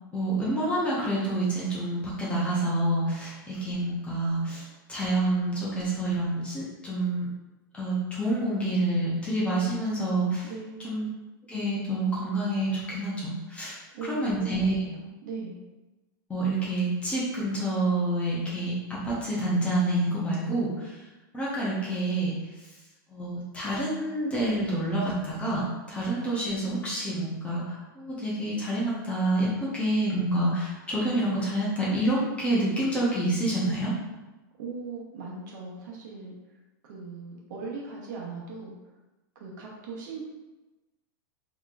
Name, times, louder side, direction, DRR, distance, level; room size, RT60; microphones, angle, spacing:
voice 1, 0.1-7.3 7.7-10.5 10.8-11.1 11.5-14.7 16.3-21.0 21.3-22.3 23.1-33.9, right 1 dB, 10° left, -6 dB, 0.8 m, -28 dB
voice 2, 10.5-11.1 13.9-15.6 34.6-36.4 36.8-38.7 39.3-40.2, right 4 dB, 55° right, -3 dB, 1.0 m, -39 dB
4.2 x 3.0 x 2.5 m, 1.1 s
supercardioid pair, 160°, 11 cm